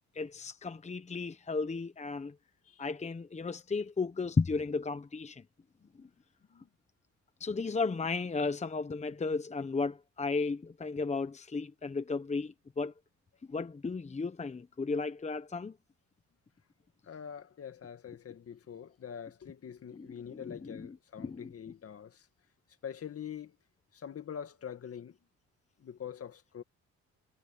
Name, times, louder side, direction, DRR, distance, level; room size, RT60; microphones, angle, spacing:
voice 1, 0.1-2.3 2.8-5.4 6.0-6.1 7.4-12.9 13.5-15.7 19.9-20.9 21.2-21.5, left 4 dB, 25° left, 1.0 m, -34 dB
voice 2, 17.0-22.3 22.8-23.6 23.9-25.2 25.8-26.6, left 8 dB, 50° left, 2.0 m, -44 dB
cardioid pair, 90°, 30 cm